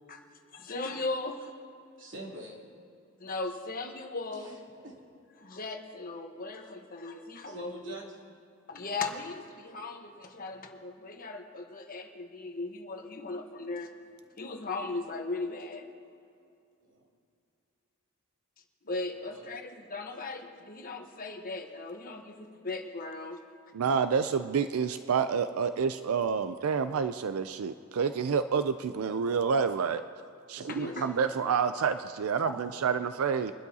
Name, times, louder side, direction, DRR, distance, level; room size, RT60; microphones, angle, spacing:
voice 1, 0.5-1.5 3.2-4.6 5.4-8.0 8.7-13.9 14.4-15.8 18.8-23.4 30.6-31.0 32.4-32.5, left 3 dB, 40° left, 4 dB, 1.1 m, -37 dB
voice 2, 2.0-2.6 4.3-5.0 7.4-8.4 16.8-17.1 19.1-19.5 24.0-24.2 30.5-31.2, right 1 dB, 60° right, -3 dB, 2.9 m, -46 dB
voice 3, 23.7-30.0 30.5-33.5, right 6 dB, 90° right, 10 dB, 0.4 m, -28 dB
23.5 x 12.0 x 2.8 m, 2.5 s
head